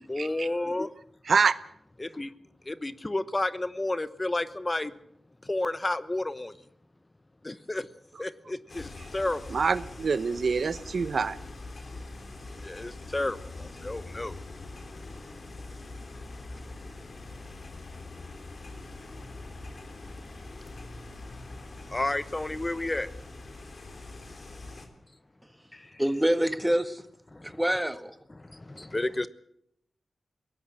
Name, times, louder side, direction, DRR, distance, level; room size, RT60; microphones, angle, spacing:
voice 1, 0.1-0.9 2.0-2.3 2.6-4.9 5.4-6.6 7.4-7.9 8.2-9.4 11.9-12.0 12.5-14.4 16.4-16.5 21.9-23.1 25.7-26.0 27.3-27.6 28.3-29.3, left 2 dB, 25° left, 15 dB, 1.0 m, -31 dB
sound 1, 8.7-24.9, left 2 dB, 50° left, 3.7 m, -43 dB
voice 2, 9.5-11.4, right 5 dB, 65° right, 15 dB, 0.8 m, -25 dB
voice 3, 26.0-27.0 27.4-28.2, right 1 dB, 5° right, 11 dB, 1.6 m, -26 dB
21.5 x 17.5 x 7.7 m, 0.73 s
wide cardioid pair, 75°, 0 cm